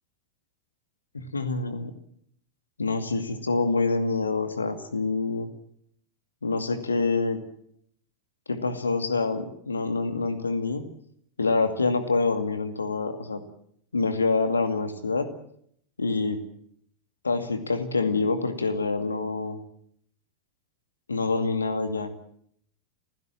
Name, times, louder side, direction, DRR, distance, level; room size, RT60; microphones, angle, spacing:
voice 1, 1.1-1.9 2.8-5.5 6.4-7.4 8.5-10.8 11.4-13.4 13.9-15.3 16.0-16.4 17.2-19.6 21.1-22.1, left 3 dB, 75° left, 9 dB, 2.3 m, -26 dB
28.5 x 16.0 x 7.5 m, 0.69 s
figure-of-eight pair, 90°, 0 cm